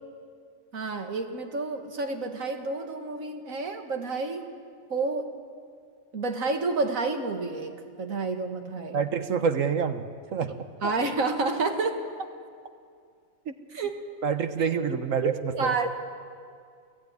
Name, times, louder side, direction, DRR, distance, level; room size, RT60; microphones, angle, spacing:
voice 1, 0.7-4.4 4.9-5.3 6.1-9.0 10.8-12.0 13.7-14.0 14.6-14.7 15.2-15.9, right 3 dB, 90° right, 5 dB, 2.1 m, -29 dB
voice 2, 8.9-10.0 10.3-10.5 10.8-10.9 13.5-13.6 14.2-15.7, right 6 dB, 75° right, 9 dB, 1.5 m, -27 dB
29.0 x 16.0 x 9.6 m, 2.2 s
omnidirectional pair, 1.4 m